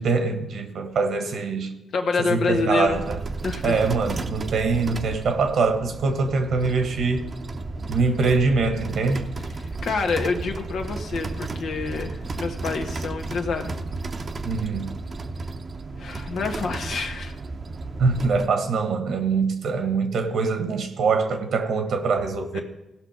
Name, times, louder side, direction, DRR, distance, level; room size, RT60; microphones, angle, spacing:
voice 1, 0.0-1.7 2.2-3.2 3.6-7.3 7.9-9.3 14.4-15.0 18.0-22.6, right 4 dB, 70° right, 1.5 m, -23 dB
voice 2, 1.9-3.0 3.4-3.8 9.5-13.7 16.0-17.4 22.5-22.6, left 4 dB, 70° left, 1.4 m, -27 dB
sound 1, 2.9-18.5, right 3 dB, 45° right, 0.9 m, -33 dB
16.5 x 5.6 x 5.1 m
supercardioid pair, 50°, 0 cm